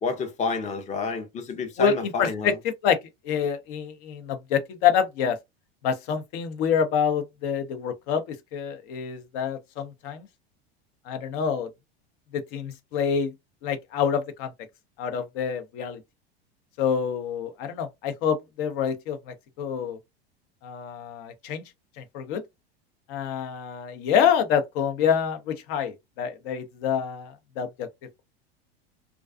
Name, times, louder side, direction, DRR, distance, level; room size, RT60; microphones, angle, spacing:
voice 1, 0.0-2.5, left 4 dB, 20° left, 0.7 m, -29 dB
voice 2, 1.8-3.0 3.2-5.4 5.8-10.3 11.1-11.7 12.3-13.3 13.6-14.5 15.0-16.0 16.8-20.0 20.6-21.6 22.0-22.4 23.1-27.9, left 7 dB, 60° left, 0.7 m, -27 dB
2.4 x 2.2 x 2.3 m
hypercardioid pair, 95°, 31 cm